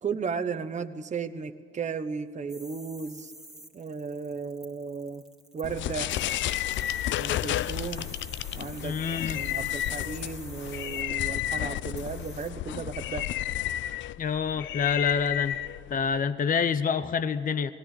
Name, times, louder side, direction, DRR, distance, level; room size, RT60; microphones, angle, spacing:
voice 1, 0.0-3.3 3.7-5.2 5.5-6.1 7.2-8.1 8.5-13.2, right 5 dB, 35° right, 8 dB, 1.0 m, -35 dB
sound 1, 2.5-12.5, right 1 dB, ahead, 2.3 m, -49 dB
sound 2, 5.6-16.3, left 13 dB, 70° left, 0.5 m, -32 dB
voice 2, 8.8-9.4 14.2-15.6 15.9-17.7, left 6 dB, 45° left, 12 dB, 0.8 m, -27 dB
19.0 x 17.0 x 8.4 m, 2.2 s
cardioid pair, 90°, 20 cm